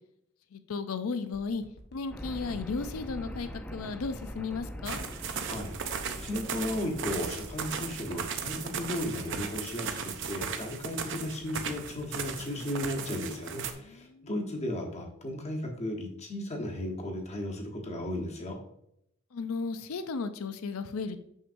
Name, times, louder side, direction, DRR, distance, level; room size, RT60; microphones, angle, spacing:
voice 1, 0.5-1.6 1.9-5.0 13.8-14.3 19.3-21.2, left 4 dB, 80° left, 10 dB, 0.5 m, -35 dB
sound 1, 1.3-13.7 14.1-14.2, left 1 dB, 50° left, 0.9 m, -53 dB
sound 2, 2.1-9.6, equal, 5° left, 0.5 m, -44 dB
sound 3, 4.8-13.7, right 6 dB, 60° right, 0.6 m, -37 dB
voice 2, 6.2-10.0 10.2-18.6, left 1 dB, 30° left, 1 dB, 1.1 m, -35 dB
6.3 x 6.1 x 2.6 m, 0.75 s
head